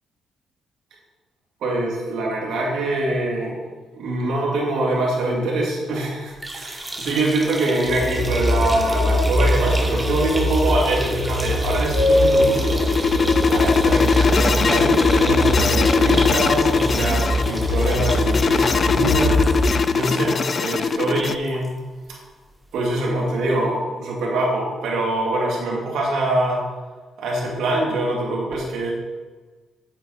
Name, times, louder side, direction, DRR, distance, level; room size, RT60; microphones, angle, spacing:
voice 1, 1.6-3.6 3.9-12.9 13.4-19.4 19.9-21.7 22.1-22.2 22.7-26.6 27.2-28.9, right 2 dB, 75° right, -3 dB, 2.8 m, -24 dB
sound 1, 6.3-21.7 22.1-22.2 22.5-22.6 23.6-23.7, right 1 dB, 10° right, 1.3 m, -32 dB
sound 2, 7.9-19.7, left 1 dB, 65° left, 1.6 m, -22 dB
sound 3, 11.9-21.4, left 5 dB, 40° left, 0.4 m, -20 dB
8.5 x 8.1 x 4.3 m, 1.3 s
cardioid pair, 90°, 0 cm